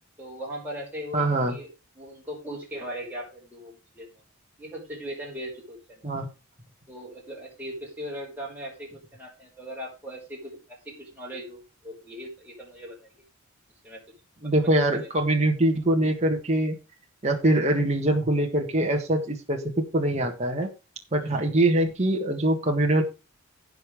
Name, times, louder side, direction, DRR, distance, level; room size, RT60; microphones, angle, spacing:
voice 1, 0.2-1.7 2.0-4.1 4.6-6.1 6.9-13.1 13.8-14.0 14.4-14.7 15.0-15.1 21.2-21.3, equal, 10° right, -4 dB, 5.3 m, -39 dB
voice 2, 1.1-1.6 6.0-6.3 14.4-16.8 17.2-20.7 21.1-23.0, right 1 dB, 35° right, 1 dB, 1.6 m, -23 dB
16.0 x 5.4 x 4.9 m, 0.30 s
head